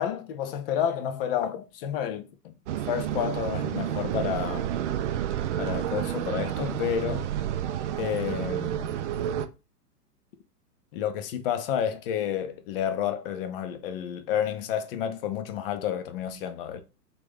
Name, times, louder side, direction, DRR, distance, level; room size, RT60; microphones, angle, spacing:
voice 1, 0.0-2.6 2.9-4.7 5.6-7.3 8.0-8.9 10.9-16.8, left 9 dB, 35° left, 0.5 m, -30 dB
sound 1, 2.7-9.5, right 10 dB, 50° right, 0.5 m, -30 dB
3.6 x 2.9 x 3.4 m
figure-of-eight pair, 105°, 49 cm